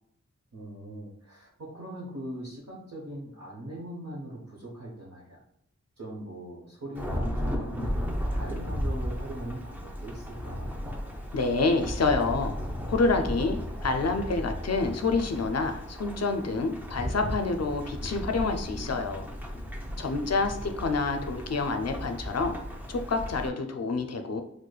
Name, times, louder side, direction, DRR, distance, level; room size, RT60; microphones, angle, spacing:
voice 1, 0.5-5.4 6.0-8.0 8.3-10.8 19.8-20.6, right 1 dB, 60° right, -6 dB, 0.9 m, -41 dB
Thunderstorm / Rain, 6.9-23.5, equal, 5° right, 0.5 m, -35 dB
voice 2, 11.3-12.6 12.9-19.3 20.0-22.6 22.9-24.4, left 3 dB, 60° left, 5 dB, 0.4 m, -28 dB
4.7 x 2.1 x 2.3 m, 0.73 s
wide cardioid pair, 55°, 29 cm